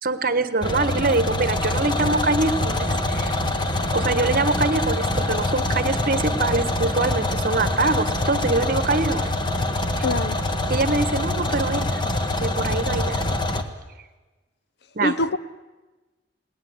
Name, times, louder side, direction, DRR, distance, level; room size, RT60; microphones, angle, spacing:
voice 1, 0.0-3.4 3.9-9.3 10.0-10.1 10.7-12.0 12.4-13.2 14.9-15.1, right 3 dB, 55° right, 1.3 m, -24 dB
sound 1, 0.6-13.6, left 1 dB, 25° left, 1.7 m, -24 dB
voice 2, 10.0-10.4 15.0-15.4, left 2 dB, 65° left, 0.8 m, -24 dB
29.0 x 19.0 x 9.6 m
head